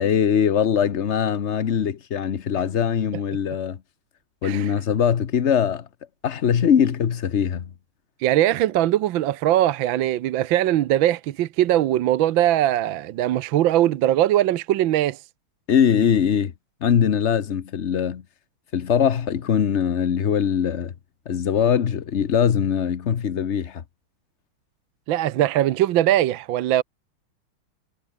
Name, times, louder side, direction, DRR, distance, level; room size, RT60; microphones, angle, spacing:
voice 1, 0.0-3.8 4.4-5.9 6.2-7.7 15.7-16.5 16.8-18.2 18.7-20.9 21.3-23.8, left 8 dB, 45° left, 0.9 m, -21 dB
voice 2, 4.4-4.7 8.2-15.2 25.1-26.8, right 13 dB, 70° right, 1.5 m, -21 dB
omnidirectional pair, 2.3 m